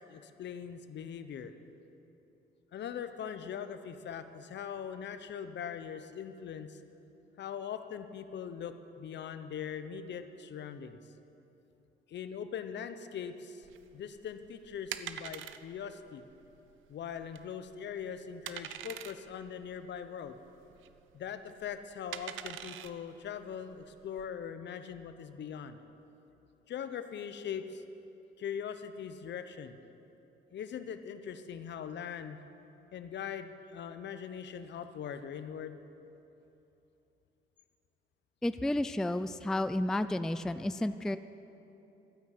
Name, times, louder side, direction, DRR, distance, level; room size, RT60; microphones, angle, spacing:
voice 1, 0.1-1.5 2.7-6.8 7.4-11.0 12.1-13.7 13.9-16.2 16.9-20.4 21.1-25.8 26.7-27.8 28.4-29.8 30.5-32.4 32.9-35.8, left 8 dB, 65° left, 10 dB, 0.8 m, -41 dB
sound 1, 13.6-24.3, right 11 dB, 80° right, 0.6 m, -46 dB
voice 2, 38.4-41.2, left 1 dB, 5° left, 12 dB, 0.3 m, -31 dB
12.5 x 9.7 x 7.7 m, 3.0 s
cardioid pair, 90°, 20 cm